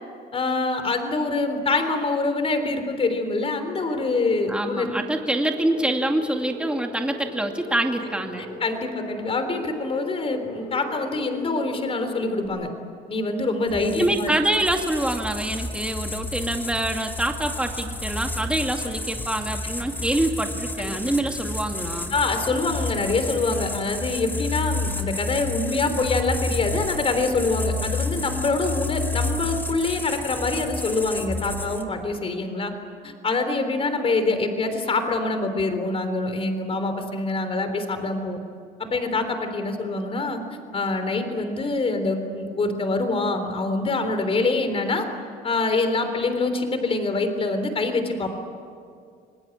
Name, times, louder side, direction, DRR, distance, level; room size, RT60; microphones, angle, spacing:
voice 1, 0.3-4.9 8.6-12.7 13.1-14.3 20.8-21.0 22.1-32.7 33.0-38.4 38.8-40.4 40.7-45.1 45.4-48.4, left 3 dB, 35° left, 8 dB, 3.6 m, -25 dB
sound 1, 3.6-12.5, left 2 dB, 60° left, 7.5 m, -39 dB
voice 2, 4.5-8.4 13.9-22.2, right 1 dB, 5° right, 3 dB, 2.4 m, -25 dB
sound 2, 13.7-32.0, left 2 dB, 10° left, 2.3 m, -30 dB
27.0 x 19.5 x 10.0 m, 2.2 s
cardioid pair, 110°, 17 cm